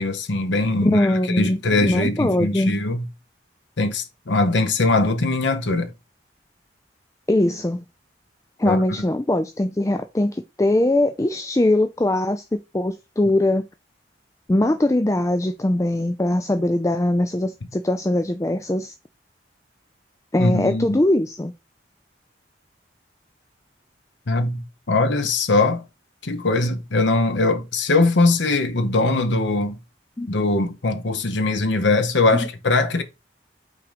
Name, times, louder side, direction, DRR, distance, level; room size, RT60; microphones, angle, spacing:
voice 1, 0.0-3.1 3.8-5.9 8.6-8.8 20.4-21.0 24.3-25.8 26.2-29.8 30.3-33.0, left 2 dB, 80° left, 1.0 m, -21 dB
voice 2, 0.9-2.8 7.3-7.8 8.6-13.7 14.5-18.9 20.3-21.5 30.2-30.3, left 1 dB, 15° left, 0.4 m, -21 dB
5.7 x 3.9 x 5.0 m
head